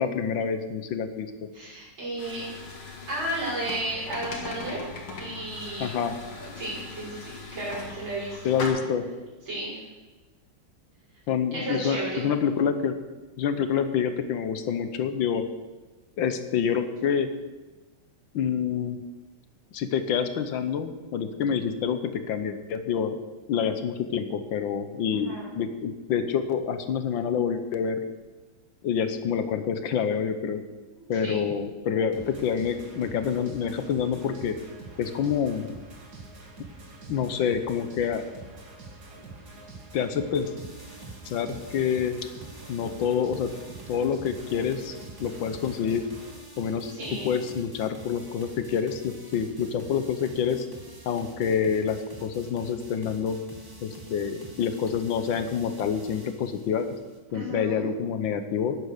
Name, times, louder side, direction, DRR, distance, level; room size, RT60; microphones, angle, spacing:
voice 1, 0.0-1.5 5.8-6.2 8.4-9.1 11.3-13.0 13.4-15.4 16.2-17.3 18.3-19.0 19.7-23.2 23.5-28.0 28.8-30.6 31.1-34.6 35.0-35.7 37.1-38.2 39.9-40.5 41.2-42.1 42.7-43.5 43.9-44.9 45.2-46.0 46.6-46.9 47.2-50.7 51.0-53.4 53.8-56.9 57.3-58.8, left 7 dB, 70° left, 9 dB, 1.6 m, -27 dB
voice 2, 1.5-2.4 3.1-4.9 5.2-6.0 6.4-8.6 9.5-9.8 11.5-12.3 25.1-25.5 31.0-31.4 46.9-47.3 57.3-57.9, right 1 dB, 65° right, -10 dB, 6.2 m, -33 dB
sound 1, 2.2-8.7, left 4 dB, 85° left, 2.9 m, -40 dB
sound 2, 32.1-46.3, right 3 dB, 50° right, 2.7 m, -45 dB
sound 3, 40.6-57.2, right 2 dB, 10° right, 1.6 m, -47 dB
10.5 x 9.5 x 6.6 m, 1.2 s
omnidirectional pair, 2.3 m